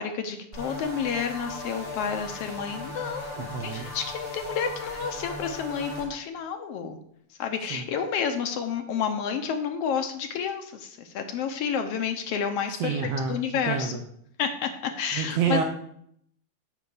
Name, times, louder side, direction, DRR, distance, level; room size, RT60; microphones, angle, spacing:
voice 1, 0.0-7.0 7.4-13.0 13.3-13.9 14.4-15.6, left 7 dB, 70° left, 6 dB, 1.5 m, -30 dB
sound 1, 0.5-6.1, left 2 dB, 25° right, 3.6 m, -38 dB
voice 2, 3.4-3.9 7.7-7.8 12.8-13.4 13.6-14.0 15.1-15.6, right 6 dB, 75° right, 4 dB, 1.5 m, -28 dB
8.2 x 4.8 x 7.0 m, 0.69 s
omnidirectional pair, 3.4 m